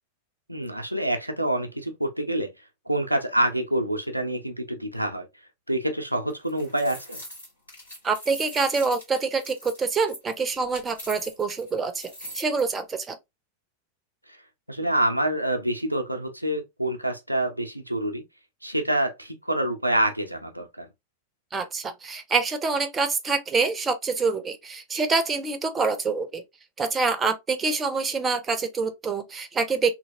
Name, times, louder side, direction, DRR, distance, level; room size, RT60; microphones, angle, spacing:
voice 1, 0.5-2.5 2.9-5.3 5.7-7.2 14.7-18.2 18.6-20.9, right 1 dB, 90° right, 0.5 m, -26 dB
sound 1, 6.3-12.6, equal, 85° left, 1.8 m, -41 dB
voice 2, 8.0-13.2 21.5-26.4 26.8-29.9, right 4 dB, 20° right, 0.5 m, -26 dB
2.8 x 2.7 x 2.6 m
figure-of-eight pair, 90°, 0 cm